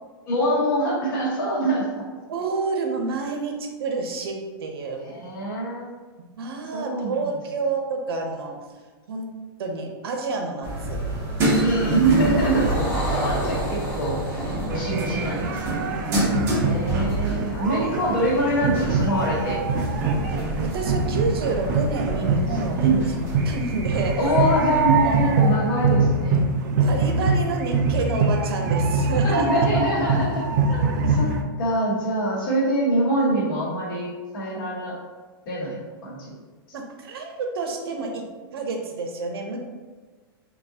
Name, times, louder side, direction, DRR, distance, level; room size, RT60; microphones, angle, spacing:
voice 1, 0.2-2.1 5.0-5.9 6.7-7.2 11.6-15.9 16.6-19.6 22.8-23.0 24.2-26.4 29.2-35.0 35.4-36.3, right 1 dB, 60° left, -5 dB, 1.4 m, -24 dB
voice 2, 2.3-5.2 6.4-8.6 9.1-9.3 9.6-11.0 20.6-24.2 25.0-25.4 26.8-29.7 36.7-39.6, right 3 dB, 80° right, 2 dB, 0.7 m, -29 dB
sound 1, 10.6-25.4, right 1 dB, 20° right, 0.7 m, -28 dB
sound 2, 12.3-16.9, equal, 15° left, 1.2 m, -34 dB
sound 3, 14.7-31.4, right 3 dB, 50° right, 0.4 m, -24 dB
3.9 x 2.4 x 2.7 m, 1.4 s
supercardioid pair, 170°, 13 cm